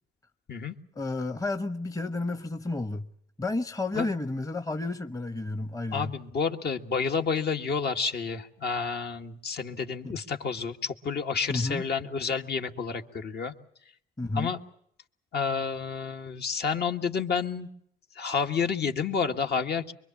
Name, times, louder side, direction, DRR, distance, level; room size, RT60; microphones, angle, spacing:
voice 1, 0.9-3.1 3.4-6.1 10.0-10.1 11.5-11.8 14.2-14.6, left 2 dB, 15° left, 1.0 m, -31 dB
voice 2, 5.9-13.5 14.3-14.6 15.3-17.7 18.2-19.9, left 5 dB, 55° left, 1.8 m, -30 dB
25.0 x 23.0 x 7.3 m
cardioid pair, 90°, 20 cm